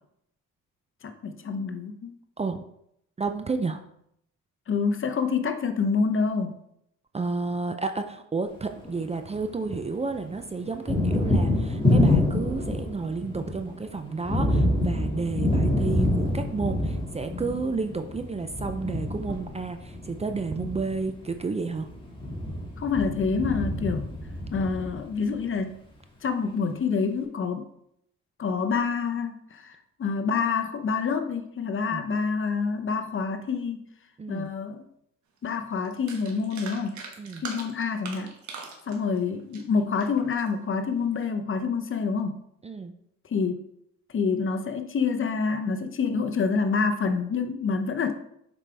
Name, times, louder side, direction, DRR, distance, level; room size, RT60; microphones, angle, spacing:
voice 1, 1.0-2.1 4.7-6.5 22.8-24.1 24.5-25.7 26.2-27.7 28.4-33.8 34.3-34.9 35.4-37.0 37.4-38.3 38.9-42.4 43.2-43.6 44.1-48.1, left 5 dB, 45° left, 7 dB, 0.8 m, -27 dB
voice 2, 3.2-3.8 7.1-21.9 31.9-32.1 34.2-34.5 37.2-37.4 42.6-42.9, right 4 dB, 20° right, 7 dB, 0.5 m, -31 dB
Thunder, 8.6-9.8 10.1-25.4, left 1 dB, 15° left, 2.1 m, -27 dB
sound 1, 35.4-35.5 35.8-40.5 41.0-41.3, right 4 dB, 70° right, 1.3 m, -41 dB
7.3 x 5.0 x 3.4 m, 0.74 s
cardioid pair, 90°, 30 cm